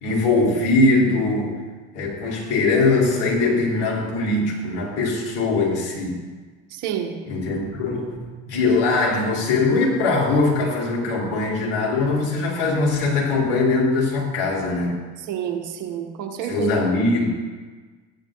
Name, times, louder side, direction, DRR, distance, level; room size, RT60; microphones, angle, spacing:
voice 1, 0.0-1.5 1.9-6.2 7.3-8.2 8.5-14.9 16.5-17.3, left 3 dB, 65° left, -3 dB, 3.4 m, -21 dB
voice 2, 6.7-7.2 15.2-16.7, right 9 dB, 65° right, 2 dB, 1.7 m, -29 dB
14.5 x 10.5 x 2.6 m, 1.4 s
hypercardioid pair, 60°, 33 cm